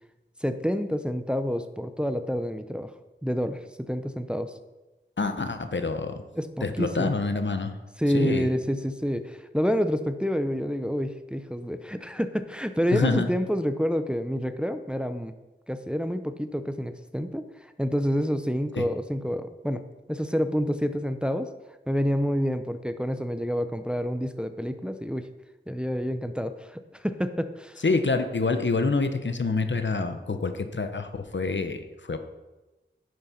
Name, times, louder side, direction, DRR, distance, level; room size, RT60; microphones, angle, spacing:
voice 1, 0.4-2.9 3.2-4.5 6.4-7.1 8.0-15.3 15.7-19.8 20.1-21.5 21.9-25.3 25.7-27.8, equal, 5° right, 9 dB, 0.6 m, -28 dB
voice 2, 5.2-6.2 6.6-7.8 8.1-8.5 12.9-13.3 18.7-18.9 27.8-32.2, left 3 dB, 70° left, 8 dB, 0.9 m, -26 dB
11.0 x 6.4 x 5.7 m, 1.1 s
wide cardioid pair, 60°, 20 cm